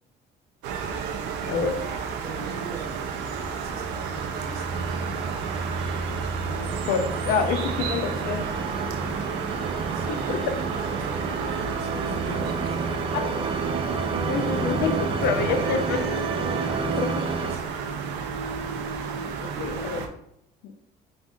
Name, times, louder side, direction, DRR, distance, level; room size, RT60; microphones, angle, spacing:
sound 1, 0.6-20.1, right 5 dB, 90° right, 0.5 m, -32 dB
voice 1, 1.5-4.9 9.9-13.0 15.5-18.1, right 4 dB, 70° right, 2 dB, 0.9 m, -42 dB
sound 2, 3.2-17.6, right 4 dB, 30° right, 0.4 m, -30 dB
voice 2, 6.9-8.5 10.1-10.4 13.1-13.3 14.3-16.0 16.9-17.2 19.4-20.0 20.6-20.7, left 6 dB, 85° left, 7 dB, 0.5 m, -27 dB
5.3 x 2.6 x 2.4 m, 0.76 s
cardioid pair, 110°, 17 cm